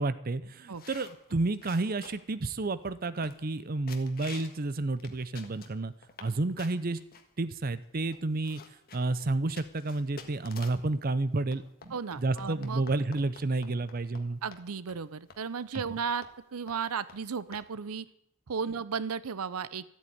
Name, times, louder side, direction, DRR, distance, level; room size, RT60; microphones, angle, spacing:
voice 1, 0.0-5.9 6.2-7.0 7.4-8.6 8.9-14.4, right 2 dB, 40° right, 14 dB, 0.6 m, -31 dB
sound 1, 0.7-2.4 2.9-3.0 3.2-3.6 3.9-4.6 5.0-6.3 6.6-7.2 7.8-7.9 8.1-10.9 11.5-14.2 14.5-14.6 14.9-15.0 15.3-15.4 15.7-15.9 16.2-16.4 16.7-16.8 17.1-17.2 17.5-17.6, left 5 dB, 45° left, 1.6 m, -49 dB
voice 2, 11.9-12.8 14.4-16.3 16.5-18.1 18.5-19.8, right 6 dB, 90° right, 17 dB, 0.6 m, -34 dB
13.5 x 8.6 x 9.4 m, 0.75 s
head